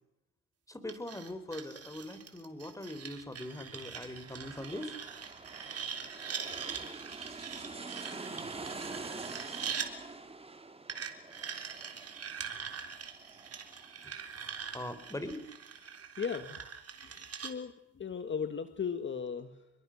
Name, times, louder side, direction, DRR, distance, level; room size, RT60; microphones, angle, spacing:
voice 1, 0.7-5.0 6.5-6.7 14.0-14.1 14.7-15.4, left 1 dB, 10° left, 11 dB, 3.6 m, -41 dB
sound 1, 0.9-9.9 10.9-17.5, right 7 dB, 55° right, 3.7 m, -43 dB
sound 2, 3.7-15.1 15.5-15.6, right 3 dB, 20° right, 2.3 m, -46 dB
voice 2, 15.8-16.7 17.0-19.7, left 6 dB, 40° left, 9 dB, 1.7 m, -38 dB
27.5 x 21.5 x 6.4 m, 0.87 s
cardioid pair, 90°, 30 cm